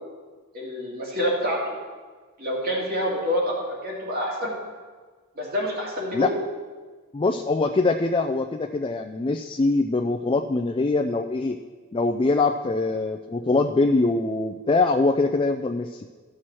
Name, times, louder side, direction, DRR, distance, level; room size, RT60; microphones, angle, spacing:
voice 1, 0.5-1.8 2.4-4.5 5.4-6.4, equal, 45° right, -2 dB, 2.4 m, -27 dB
voice 2, 7.1-11.6 11.9-16.0, left 3 dB, 25° left, 6 dB, 0.3 m, -23 dB
14.0 x 6.2 x 4.4 m, 1.4 s
head